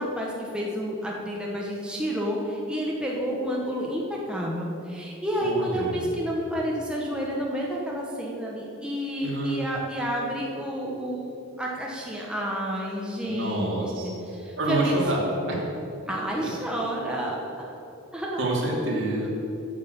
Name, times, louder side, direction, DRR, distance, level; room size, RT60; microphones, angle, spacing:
voice 1, 0.0-11.3 11.6-13.8 14.0-15.0 16.1-17.7 18.1-18.4, equal, 5° right, -4 dB, 1.1 m, -30 dB
voice 2, 5.4-6.0 9.2-9.7 13.2-14.1 14.6-15.2 15.5-15.6 18.4-19.3, right 2 dB, 65° right, -4 dB, 2.6 m, -27 dB
9.3 x 6.5 x 8.2 m, 2.8 s
head